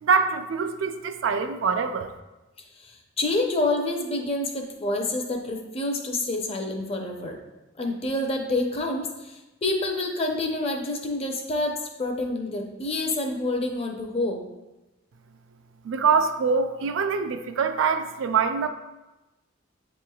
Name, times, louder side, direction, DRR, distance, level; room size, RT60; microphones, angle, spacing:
voice 1, 0.0-2.1 15.8-18.7, right 5 dB, 70° right, 8 dB, 0.3 m, -24 dB
voice 2, 2.8-7.4 7.8-14.4, left 2 dB, 30° left, 2 dB, 0.5 m, -28 dB
7.2 x 3.0 x 2.3 m, 1.0 s
head